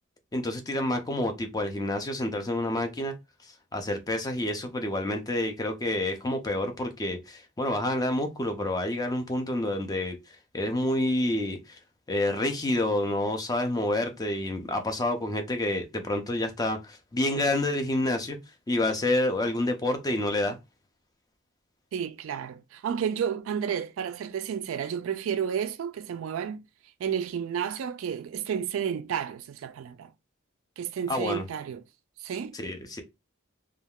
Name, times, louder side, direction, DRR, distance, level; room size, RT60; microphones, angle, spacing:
voice 1, 0.3-3.1 3.7-10.2 10.5-11.8 12.1-18.4 18.7-20.6 31.1-31.5 32.5-33.0, left 1 dB, 20° left, 0.4 m, -28 dB
voice 2, 21.9-26.6 27.0-30.1 30.8-31.8 32.2-32.5, right 8 dB, 65° right, 0.3 m, -31 dB
3.4 x 2.3 x 2.2 m
head